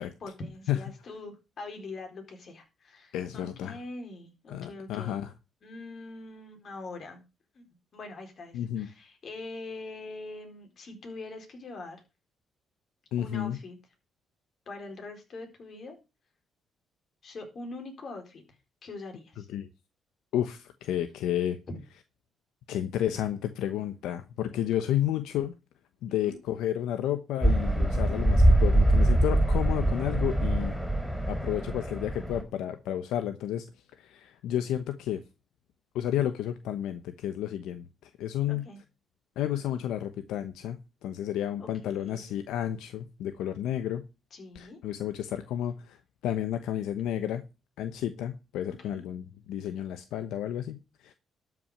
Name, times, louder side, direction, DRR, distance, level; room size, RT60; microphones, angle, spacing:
voice 1, 0.0-5.1 5.6-7.2 7.5-7.7 7.9-12.0 13.2-13.8 14.7-15.9 17.2-18.4 18.8-19.5 21.7-21.8 26.1-26.4 38.5-38.8 41.6-42.4 44.3-44.8 48.7-49.1, left 2 dB, 50° left, 4.3 m, -43 dB
voice 2, 3.1-3.8 4.5-5.3 8.5-8.9 13.1-13.6 19.5-19.7 20.3-21.6 22.7-25.6 26.0-30.7 31.3-33.6 34.0-35.2 35.9-38.7 39.4-44.0 44.5-47.4 47.8-51.1, left 11 dB, 90° left, 0.9 m, -31 dB
sound 1, 27.4-32.4, right 1 dB, 5° right, 4.3 m, -24 dB
12.5 x 6.0 x 6.6 m
cardioid pair, 90°, 0 cm